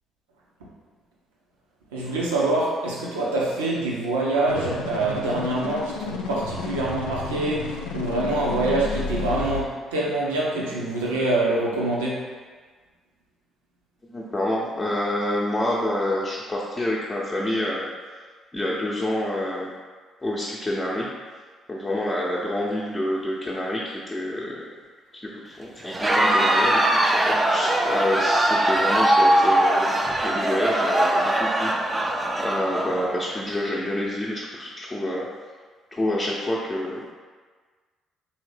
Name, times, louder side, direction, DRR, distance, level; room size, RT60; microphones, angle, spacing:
voice 1, 1.9-12.3, right 2 dB, 85° right, -4 dB, 0.6 m, -25 dB
sound 1, 4.5-9.6, left 4 dB, 80° left, 0.3 m, -32 dB
voice 2, 14.1-17.9 18.5-19.7 20.2-21.1 21.7-24.6 25.1-32.1 32.4-35.3 35.9-37.0, left 1 dB, 20° left, -6 dB, 0.7 m, -27 dB
Crowd, 25.8-33.4, right 1 dB, 25° right, 0.4 m, -21 dB
3.4 x 2.8 x 3.3 m, 1.5 s
hypercardioid pair, 50°, 0 cm